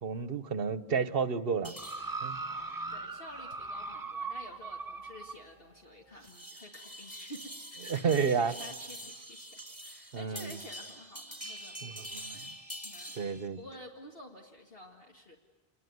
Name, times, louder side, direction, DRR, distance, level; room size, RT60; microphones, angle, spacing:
voice 1, 0.0-1.7 2.2-2.4 7.9-8.5 10.1-10.6 11.8-12.4 13.2-13.6, right 5 dB, 55° right, 14 dB, 1.2 m, -31 dB
sound 1, 1.6-13.5, right 1 dB, 10° left, 3.2 m, -47 dB
sound 2, 1.8-5.4 6.2-6.3, right 3 dB, 20° right, 0.8 m, -39 dB
voice 2, 2.9-12.5 12.8-15.4, left 1 dB, 55° left, 0 dB, 2.2 m, -50 dB
27.0 x 21.0 x 9.4 m, 1.3 s
omnidirectional pair, 1.2 m